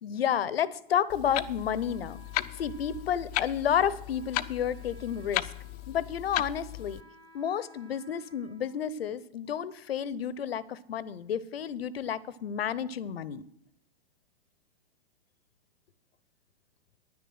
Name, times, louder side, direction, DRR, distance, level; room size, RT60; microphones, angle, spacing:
voice 1, 0.0-2.2 2.6-5.5 5.9-7.0 7.3-13.4, left 8 dB, 70° left, 19 dB, 0.8 m, -31 dB
Clock, 1.1-7.0, left 16 dB, 40° left, 0.6 m, -36 dB
Wind instrument woodwind instrument, 1.7-9.4, left 2 dB, 15° right, 1.5 m, -57 dB
10.0 x 9.6 x 6.2 m, 0.75 s
hypercardioid pair, 110°, 31 cm